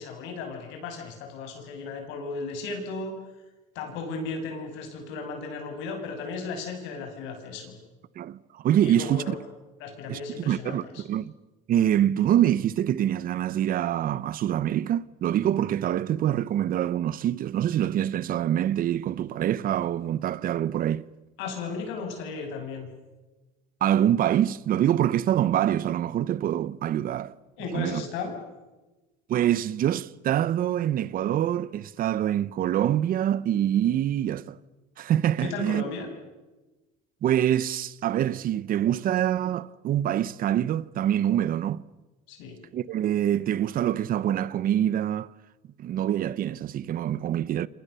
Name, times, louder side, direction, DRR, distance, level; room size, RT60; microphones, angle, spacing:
voice 1, 0.0-3.1 3.8-7.7 8.8-9.4 9.8-11.0 21.4-22.9 27.6-28.4 35.4-36.1 42.3-42.6, left 4 dB, 75° left, 7.4 m, -35 dB
voice 2, 8.2-9.3 10.1-11.3 11.7-21.1 23.8-27.3 27.7-28.0 29.3-34.6 35.0-35.8 37.2-41.8 42.7-45.3 45.8-47.7, right 11 dB, 50° right, 0.9 m, -25 dB
28.5 x 26.0 x 6.9 m
cardioid pair, 115°, 19 cm